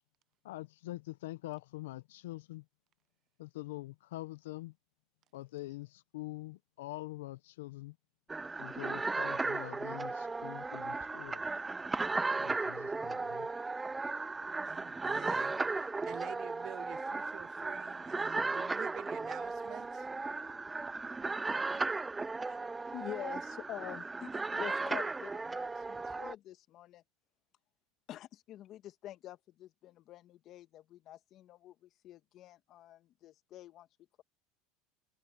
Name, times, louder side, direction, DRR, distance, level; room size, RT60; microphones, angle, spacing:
voice 1, 0.4-2.6 3.4-4.7 5.3-8.0 8.6-11.4 12.3-13.5, left 18 dB, 85° left, 0.7 m, -45 dB
sound 1, 8.3-26.3, right 3 dB, 15° right, 0.3 m, -36 dB
voice 2, 14.6-20.1, right 13 dB, 45° right, 0.8 m, -49 dB
voice 3, 22.9-27.0 28.1-33.9, left 13 dB, 50° left, 2.0 m, -47 dB
supercardioid pair, 105°, 0 cm